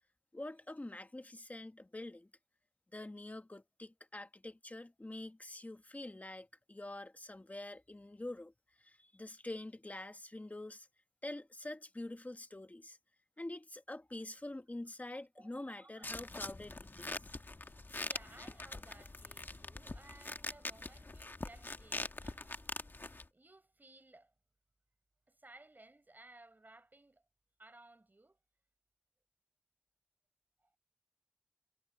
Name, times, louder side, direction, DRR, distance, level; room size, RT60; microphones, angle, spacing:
voice 1, 0.3-2.3 2.9-8.5 8.8-10.9 11.2-13.0 13.4-17.2, left 1 dB, 45° left, 1.4 m, -46 dB
sound 1, 16.0-23.2, left 2 dB, 70° left, 1.4 m, -44 dB
voice 2, 18.0-22.9 23.3-24.3 25.3-27.2 27.6-28.4 30.6-30.7, right 2 dB, 60° right, 6.4 m, -59 dB
wide cardioid pair, 45°, 4 cm